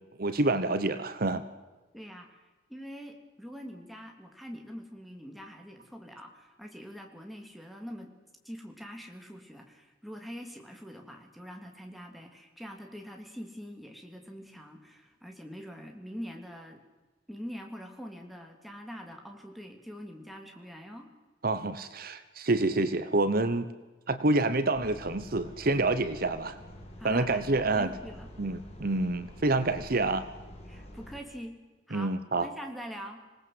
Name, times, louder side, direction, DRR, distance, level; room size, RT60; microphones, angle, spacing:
voice 1, 0.2-1.4 21.4-23.7 24.1-26.6 27.0-27.9 28.4-30.2 31.9-32.5, right 2 dB, 55° right, 12 dB, 1.1 m, -27 dB
voice 2, 1.9-8.1 8.4-16.8 17.3-21.1 27.0-28.3 30.7-31.6 31.9-32.1 32.4-33.2, equal, ahead, 2 dB, 3.0 m, -44 dB
sound 1, 24.7-31.2, left 1 dB, 35° left, 4.3 m, -48 dB
26.5 x 18.5 x 7.9 m, 1.2 s
head